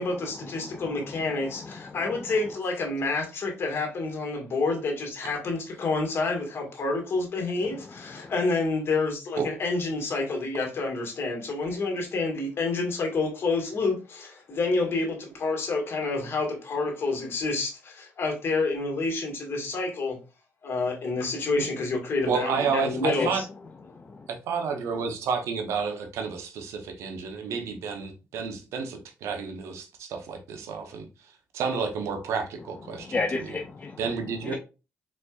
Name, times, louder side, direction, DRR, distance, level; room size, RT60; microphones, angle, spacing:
voice 1, 0.0-20.2 20.6-23.3, left 3 dB, 55° left, 1.9 m, -28 dB
voice 2, 0.6-2.0 8.1-8.3 23.2-23.4 23.9-24.3 32.9-34.0 34.4-34.6, left 3 dB, 35° left, 0.6 m, -34 dB
voice 3, 22.2-23.4 24.3-31.1 31.5-33.5 34.0-34.6, right 5 dB, 80° right, 0.9 m, -30 dB
4.3 x 4.1 x 2.4 m
cardioid pair, 70°, 5 cm